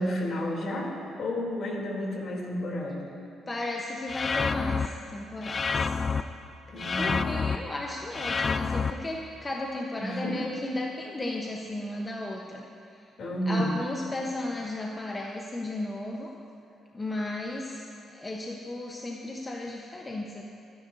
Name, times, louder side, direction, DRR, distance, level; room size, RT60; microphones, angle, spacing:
voice 1, 0.0-3.1 6.7-7.3 10.0-10.4 13.2-13.7, equal, 60° left, -2 dB, 3.3 m, -31 dB
voice 2, 3.5-6.0 7.0-12.6 12.9-13.0 13.5-16.3 16.9-20.4, left 2 dB, 25° left, -1 dB, 1.1 m, -34 dB
sound 1, 4.1-4.9 5.4-6.2 6.8-7.6 8.1-8.9, left 4 dB, 40° left, 0.5 m, -28 dB
28.5 x 10.5 x 2.8 m, 2.5 s
cardioid pair, 90°, 0 cm